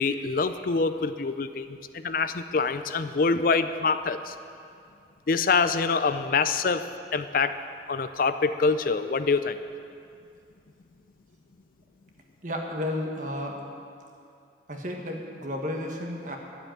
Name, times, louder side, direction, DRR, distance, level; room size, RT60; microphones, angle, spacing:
voice 1, 0.0-4.3 5.3-6.8 7.1-7.6 7.9-9.6, left 4 dB, 50° left, 11 dB, 0.4 m, -25 dB
voice 2, 12.4-13.6 14.7-16.4, left 1 dB, 45° right, 1 dB, 1.6 m, -32 dB
12.0 x 7.9 x 9.0 m, 2.4 s
head